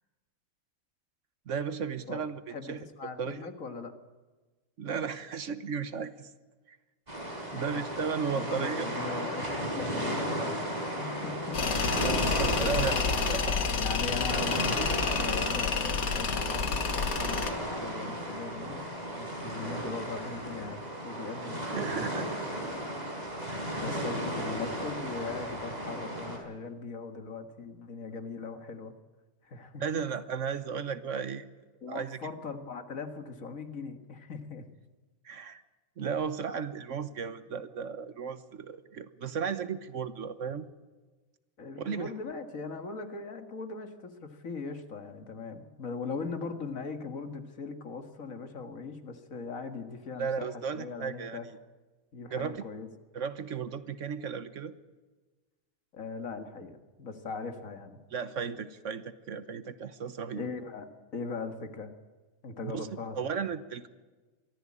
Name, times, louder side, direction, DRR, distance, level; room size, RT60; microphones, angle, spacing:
voice 1, 1.5-2.8 3.2-3.5 4.8-6.3 6.7-6.8 7.5-8.9 12.0-13.0 13.3-13.6 21.7-22.3 23.5-23.9 29.8-31.4 31.9-32.3 35.2-35.6 36.0-40.7 41.8-42.1 50.2-51.4 52.3-52.6 53.1-54.7 58.1-60.5 62.6-62.9 63.2-63.9, right 6 dB, 60° right, 13 dB, 1.3 m, -35 dB
voice 2, 2.5-3.9 7.5-7.8 8.3-11.7 12.6-13.2 13.8-16.9 17.1-18.9 19.2-22.3 22.8-22.9 23.7-28.9 29.4-30.1 31.8-34.6 41.6-51.5 52.1-52.9 55.9-58.0 60.4-60.9 61.1-61.9 62.4-63.5, left 4 dB, 70° left, 7 dB, 2.1 m, -40 dB
sound 1, 7.1-26.4, right 1 dB, 30° right, 4.5 m, -35 dB
Tools, 11.5-17.5, left 5 dB, 90° left, 1.9 m, -29 dB
23.0 x 15.0 x 8.7 m, 1.3 s
omnidirectional pair, 1.5 m